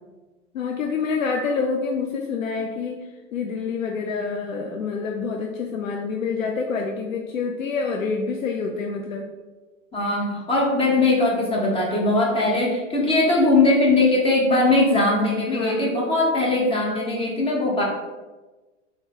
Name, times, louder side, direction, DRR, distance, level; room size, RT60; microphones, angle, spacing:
voice 1, 0.5-9.3 15.5-15.9, left 5 dB, 85° left, 2 dB, 0.5 m, -27 dB
voice 2, 9.9-17.8, left 2 dB, 15° left, -3 dB, 1.0 m, -20 dB
4.3 x 2.3 x 3.6 m, 1.2 s
figure-of-eight pair, 95°, 39 cm